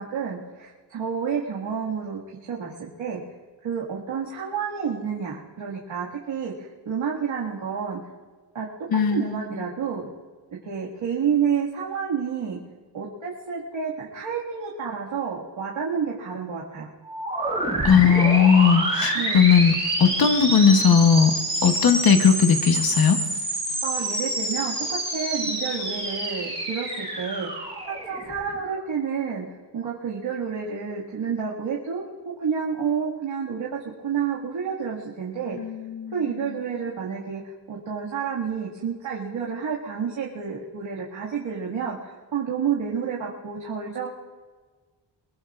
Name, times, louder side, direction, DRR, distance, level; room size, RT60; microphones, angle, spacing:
voice 1, 0.0-2.2 2.5-3.2 3.6-8.0 8.5-8.7 8.9-10.1 10.7-12.6 12.9-16.9 19.1-19.4 23.8-27.5 27.9-29.5 29.7-32.0 32.4-35.6 36.1-37.4 37.7-44.1, right 7 dB, 90° right, -5 dB, 2.0 m, -29 dB
voice 2, 8.9-9.5 17.8-19.7 20.0-21.3 21.6-23.2 35.6-36.1, left 6 dB, 50° left, 6 dB, 1.1 m, -18 dB
sound 1, 17.0-28.7, right 1 dB, 15° right, 5.0 m, -28 dB
24.0 x 22.0 x 2.5 m, 1.4 s
wide cardioid pair, 170°, 45 cm